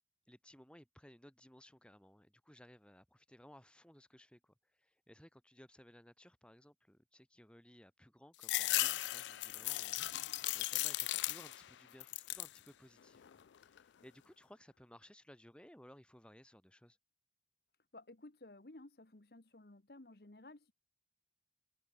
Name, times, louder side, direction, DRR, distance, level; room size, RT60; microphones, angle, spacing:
voice 1, 0.3-17.0, equal, 5° left, 2.2 m, -60 dB
sound 1, 8.4-11.7 12.0-12.6 13.1-13.8, left 17 dB, 90° left, 0.4 m, -37 dB
voice 2, 17.9-20.7, left 2 dB, 60° left, 1.3 m, -55 dB
head